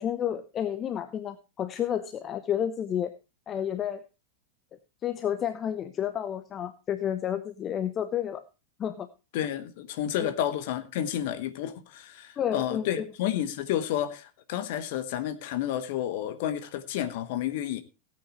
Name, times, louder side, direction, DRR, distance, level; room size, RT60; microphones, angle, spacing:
voice 1, 0.0-3.1 3.5-4.0 5.0-8.4 8.8-9.1 10.2-10.3 12.4-13.1, left 9 dB, 30° left, 0.7 m, -31 dB
voice 2, 9.3-17.8, left 11 dB, 50° left, 1.2 m, -31 dB
17.0 x 8.7 x 3.0 m
figure-of-eight pair, 90°, 0 cm